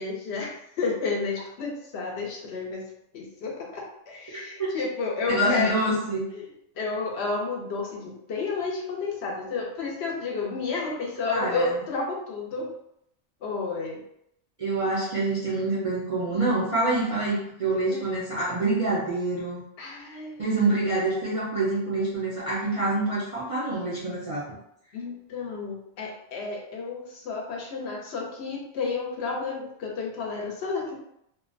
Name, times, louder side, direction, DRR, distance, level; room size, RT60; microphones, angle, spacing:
voice 1, 0.0-2.8 3.1-5.8 6.3-6.5 6.8-12.7 13.4-14.0 17.9-18.0 19.8-20.5 24.9-31.0, left 4 dB, 70° left, -1 dB, 0.8 m, -31 dB
voice 2, 4.3-4.7 5.3-6.2 11.2-11.8 14.6-19.6 20.4-24.5, right 2 dB, 40° right, -8 dB, 0.5 m, -26 dB
2.4 x 2.0 x 2.5 m, 0.75 s
omnidirectional pair, 1.2 m